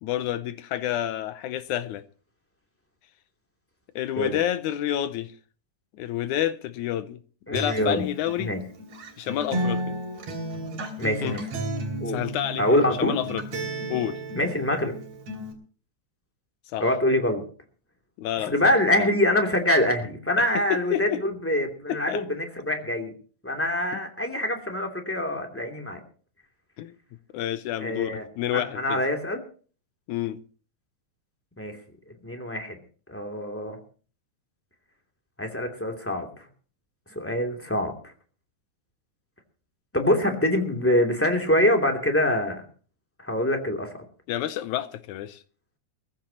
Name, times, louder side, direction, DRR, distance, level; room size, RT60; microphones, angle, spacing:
voice 1, 0.0-2.0 4.0-5.3 5.9-7.2 7.5-8.5 9.2-10.0 11.2-11.4 12.1-13.4 13.9-14.2 16.7-16.9 18.2-18.7 19.0-19.1 20.4-21.2 21.9-22.2 23.9-24.0 26.8-27.0 27.3-29.0 30.1-30.4 44.3-45.4, left 12 dB, 80° left, 2.2 m, -29 dB
voice 2, 7.5-8.1 8.4-8.6 11.0-11.4 12.0-12.2 12.6-13.2 14.3-14.9 16.8-17.4 18.5-23.1 23.4-26.0 27.8-28.2 28.5-29.4 31.6-31.7 32.2-32.8 33.1-33.8 35.4-36.3 37.1-37.9 39.9-42.6 43.2-44.0, left 1 dB, 5° left, 2.4 m, -25 dB
Acoustic guitar, 7.5-15.5, right 1 dB, 65° right, 4.2 m, -33 dB
22.0 x 15.0 x 2.9 m
omnidirectional pair, 3.4 m